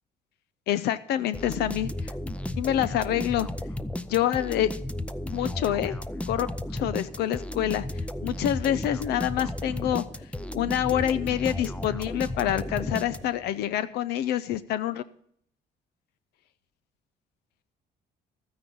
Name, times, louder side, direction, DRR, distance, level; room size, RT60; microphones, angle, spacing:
voice 1, 0.7-2.1 2.6-3.5 4.1-4.7 5.3-6.0 6.3-6.5 6.7-7.9 8.2-10.0 10.5-15.0, left 11 dB, 75° left, 14 dB, 0.6 m, -27 dB
sound 1, 1.3-13.5, left 1 dB, 5° left, 0.6 m, -34 dB
13.0 x 9.6 x 5.5 m, 0.65 s
cardioid pair, 110°, 17 cm